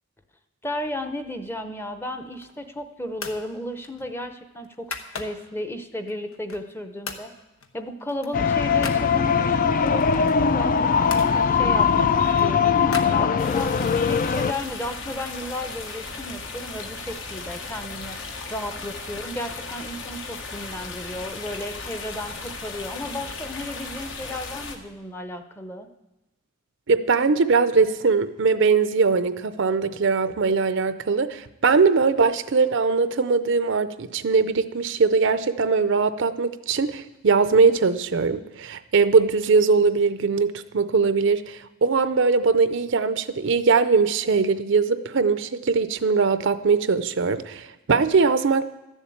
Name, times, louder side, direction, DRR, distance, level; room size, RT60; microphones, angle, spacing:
voice 1, 0.6-7.3 7.7-12.8 13.1-13.7 14.1-25.9, left 1 dB, 10° left, 7 dB, 0.7 m, -34 dB
sound 1, 2.2-2.7 3.1-3.5 3.8-5.6 6.1-6.8 7.0-7.3 7.6-9.1 9.8-11.3 11.9-13.7, left 4 dB, 85° left, 1.1 m, -38 dB
sound 2, 8.3-14.5, left 6 dB, 40° left, 0.4 m, -21 dB
sound 3, 13.4-24.8, left 3 dB, 65° left, 1.3 m, -36 dB
voice 2, 26.9-48.7, right 4 dB, 60° right, 12 dB, 0.6 m, -21 dB
13.0 x 7.2 x 8.5 m, 0.97 s
head